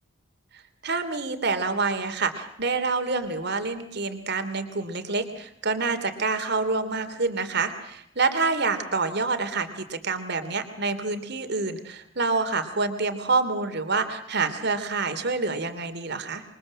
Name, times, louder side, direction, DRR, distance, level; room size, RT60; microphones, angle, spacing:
voice 1, 0.8-16.4, right 4 dB, 55° right, 8 dB, 3.1 m, -27 dB
27.5 x 23.0 x 7.6 m, 0.75 s
head